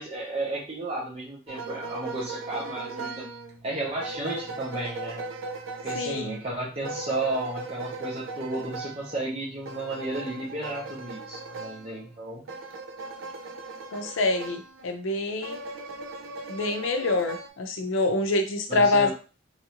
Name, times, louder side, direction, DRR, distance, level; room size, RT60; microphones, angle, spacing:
voice 1, 0.0-3.2 3.6-5.2 5.8-12.4 18.7-19.1, right 2 dB, 30° right, -5 dB, 0.7 m, -33 dB
sound 1, 1.5-14.9 15.4-17.5, right 3 dB, 80° right, 0.5 m, -38 dB
voice 2, 5.9-6.4 13.9-15.6 16.5-19.1, left 2 dB, 80° left, 6 dB, 0.5 m, -26 dB
3.1 x 2.5 x 2.8 m, 0.35 s
head